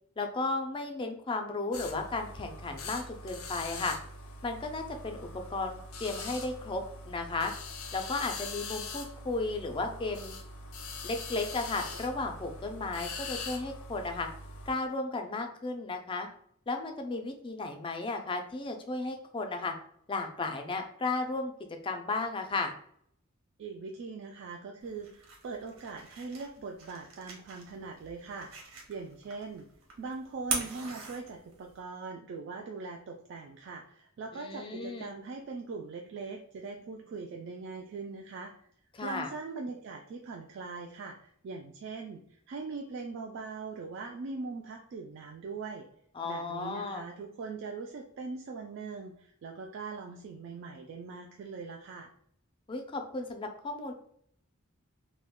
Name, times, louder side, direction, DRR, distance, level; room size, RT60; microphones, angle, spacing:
voice 1, 0.2-4.0 4.4-7.5 7.9-10.4 11.0-14.3 14.7-16.3 16.7-19.7 20.1-21.5 21.8-22.7 34.3-35.1 38.9-39.3 46.2-47.0 52.7-53.9, left 3 dB, 25° left, 5 dB, 0.4 m, -34 dB
sound 1, 1.7-14.7, left 3 dB, 90° left, 0.5 m, -42 dB
voice 2, 23.6-28.6 28.9-29.7 30.0-38.5 39.0-45.9 46.2-52.1, right 4 dB, 60° right, 1 dB, 0.3 m, -41 dB
sound 2, 24.8-31.8, right 4 dB, 85° right, 0.8 m, -42 dB
2.3 x 2.1 x 3.5 m, 0.66 s
head